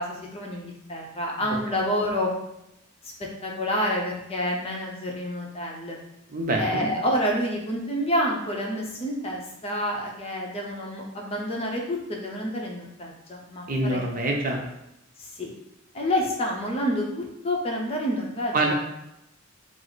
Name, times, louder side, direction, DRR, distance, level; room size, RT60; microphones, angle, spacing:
voice 1, 0.0-2.3 3.4-6.0 6.6-14.0 15.2-15.5 15.9-18.7, equal, 30° left, -1 dB, 0.7 m, -28 dB
voice 2, 6.3-6.9 13.7-14.6 18.5-18.7, right 2 dB, 40° right, 1 dB, 0.6 m, -25 dB
4.8 x 2.0 x 4.0 m, 0.87 s
head